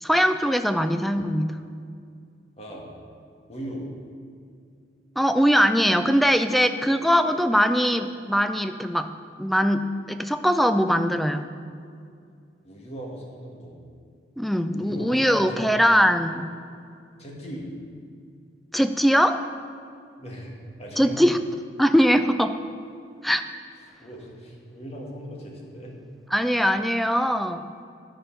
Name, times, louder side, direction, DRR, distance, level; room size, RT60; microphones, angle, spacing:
voice 1, 0.0-1.6 5.2-9.1 9.4-11.5 14.4-16.5 18.7-19.4 21.0-21.4 21.8-22.6 23.2-23.4 26.3-27.6, equal, ahead, 9 dB, 0.3 m, -21 dB
voice 2, 3.5-3.9 12.6-13.8 14.7-15.6 17.2-17.7 20.2-21.2 24.0-25.9, equal, 35° left, -2 dB, 1.5 m, -38 dB
11.0 x 5.1 x 5.7 m, 2.3 s
head